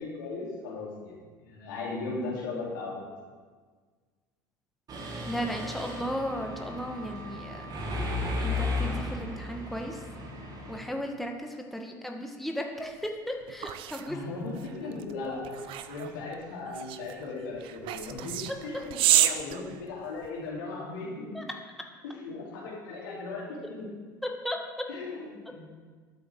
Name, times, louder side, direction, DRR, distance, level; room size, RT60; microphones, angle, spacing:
voice 1, 0.0-3.1 14.1-15.6 15.9-21.5 22.0-23.8 24.9-25.7, left 3 dB, 75° left, -4 dB, 2.9 m, -37 dB
Mechanisms, 4.9-10.8, left 2 dB, 35° right, 2.0 m, -34 dB
voice 2, 5.2-7.7 8.4-10.0 10.7-14.2 21.3-21.4 24.2-24.6, equal, ahead, 2 dB, 1.2 m, -35 dB
sound 1, 13.0-20.5, right 12 dB, 50° right, 0.6 m, -31 dB
12.0 x 8.5 x 3.6 m, 1.5 s
hypercardioid pair, 70°, 11 cm